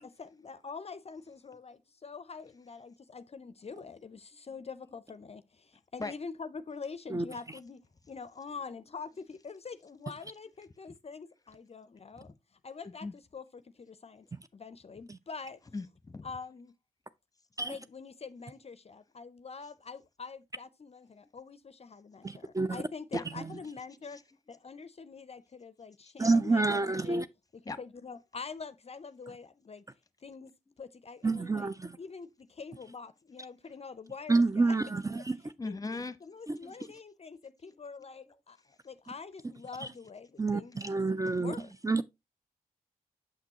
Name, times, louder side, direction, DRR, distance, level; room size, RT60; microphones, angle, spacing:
voice 1, 0.0-12.3 12.6-14.3 14.5-15.6 16.2-16.7 17.6-24.2 24.5-27.2 27.8-29.8 30.2-31.7 32.0-34.8 35.6-35.8 36.2-41.0 41.4-41.7, left 5 dB, 40° left, 0.5 m, -45 dB
voice 2, 15.7-16.3 23.1-23.2 27.7-27.8 35.6-36.2, left 3 dB, 25° left, 0.9 m, -37 dB
voice 3, 22.2-22.8 23.4-23.5 26.2-27.3 31.2-32.0 34.3-35.4 36.5-36.6 40.4-41.5 41.8-42.0, right 3 dB, 20° right, 0.4 m, -28 dB
6.8 x 5.9 x 2.8 m
supercardioid pair, 40°, 16 cm